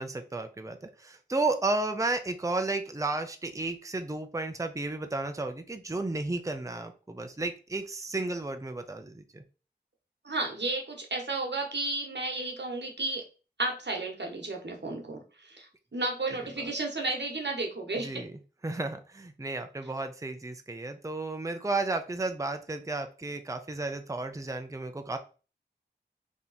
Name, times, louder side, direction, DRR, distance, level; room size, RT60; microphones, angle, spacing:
voice 1, 0.0-9.4 16.6-16.7 17.9-18.3 18.6-25.2, right 2 dB, 20° right, 6 dB, 0.5 m, -33 dB
voice 2, 10.2-13.2 13.6-15.7 15.9-18.2, right 2 dB, 80° right, 1 dB, 1.1 m, -33 dB
3.6 x 2.9 x 4.0 m, 0.34 s
wide cardioid pair, 45°, 18 cm